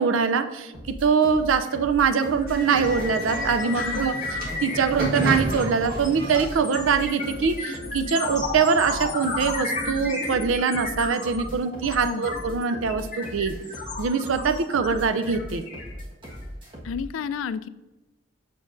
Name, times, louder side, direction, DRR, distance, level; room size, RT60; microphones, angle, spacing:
voice 1, 0.0-13.6 14.0-15.6, right 5 dB, 75° right, 11 dB, 0.4 m, -23 dB
sound 1, 0.7-17.0, equal, 25° right, 1.3 m, -39 dB
sound 2, 1.6-1.8 2.1-16.4, left 3 dB, 40° left, 1.8 m, -34 dB
sound 3, 2.5-8.1, left 1 dB, 50° right, 1.4 m, -31 dB
voice 2, 3.7-4.1 12.0-12.3 16.8-17.7, left 6 dB, 75° left, 15 dB, 0.3 m, -31 dB
7.2 x 6.8 x 2.5 m, 1.1 s
head